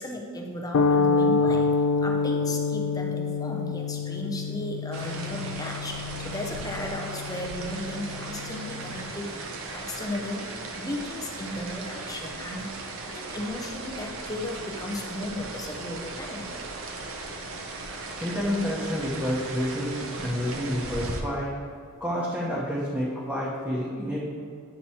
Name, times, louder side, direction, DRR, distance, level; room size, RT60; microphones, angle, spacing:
voice 1, 0.0-1.7 2.0-9.3 9.7-16.5, left 1 dB, 15° left, 1 dB, 0.5 m, -35 dB
sound 1, 0.7-9.1, left 4 dB, 75° left, 0.3 m, -27 dB
sound 2, 4.9-21.2, right 3 dB, 65° right, 0.7 m, -37 dB
voice 2, 18.2-21.5 22.0-24.2, equal, 5° right, -8 dB, 0.9 m, -29 dB
8.6 x 3.0 x 4.2 m, 2.3 s
head